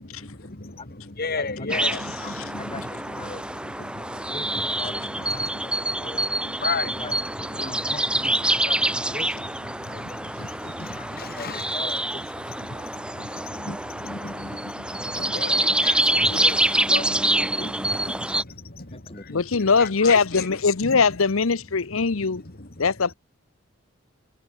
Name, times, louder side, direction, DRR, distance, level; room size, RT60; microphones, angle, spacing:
voice 1, 0.0-2.8 3.2-3.3 3.6-4.9 5.2-7.2 7.4-7.7 8.4-9.2 9.7-11.8 12.5-21.0 21.7-22.8, left 3 dB, 45° left, 2.4 m, -36 dB
voice 2, 1.4-1.8 2.2-2.3 2.6-3.4 4.3-6.3 7.0-7.1 7.6-8.8 9.0-9.4 9.9-12.2 18.9-19.5, left 2 dB, 25° left, 3.9 m, -41 dB
sound 1, 1.7-18.4, right 1 dB, 5° right, 1.2 m, -26 dB
voice 3, 19.3-22.4 22.8-23.1, left 4 dB, 75° left, 0.9 m, -21 dB
head